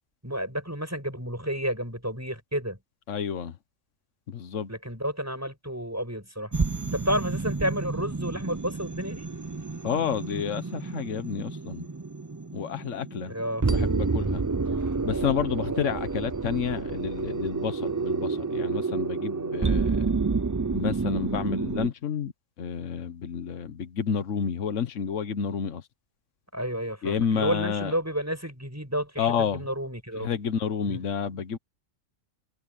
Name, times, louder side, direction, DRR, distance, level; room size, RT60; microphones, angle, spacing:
voice 1, 0.2-2.8 4.7-6.5 6.9-9.3 13.3-13.7 26.5-30.3 30.8-31.0, equal, 10° right, 7.5 m, -31 dB
voice 2, 3.1-3.6 4.3-4.7 9.8-11.8 12.5-13.3 13.6-14.4 15.0-20.1 20.7-22.3 22.6-25.8 27.0-27.9 29.2-29.7 30.2-31.6, left 7 dB, 75° left, 1.4 m, -30 dB
sound 1, 6.5-21.9, right 4 dB, 30° right, 0.3 m, -29 dB
omnidirectional pair, 1.3 m